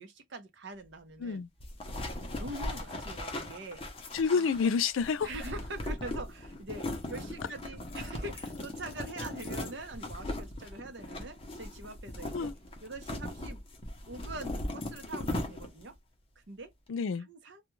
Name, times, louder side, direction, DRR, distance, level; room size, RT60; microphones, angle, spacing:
voice 1, 0.0-1.4 2.4-3.8 4.3-4.4 5.2-12.5 12.8-13.6 14.1-16.0 16.4-16.7 17.3-17.6, right 2 dB, 65° right, 0.7 m, -43 dB
Bag stuff, 1.6-15.9, left 1 dB, 30° left, 0.6 m, -39 dB
voice 2, 4.1-5.3 12.3-12.5 16.9-17.3, left 5 dB, 85° left, 0.4 m, -29 dB
2.2 x 2.2 x 3.0 m
head